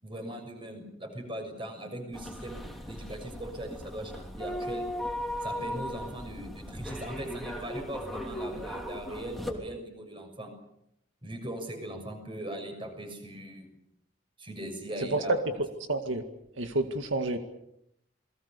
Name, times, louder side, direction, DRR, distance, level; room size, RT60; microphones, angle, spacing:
voice 1, 0.0-4.9 5.4-10.5 11.2-13.7 14.4-15.4, right 1 dB, 25° right, 5 dB, 6.4 m, -39 dB
sound 1, 2.1-9.5, equal, ahead, 3.3 m, -38 dB
voice 2, 15.1-16.2 16.6-17.4, right 2 dB, 80° right, 6 dB, 2.0 m, -29 dB
29.0 x 21.5 x 6.9 m, 0.78 s
head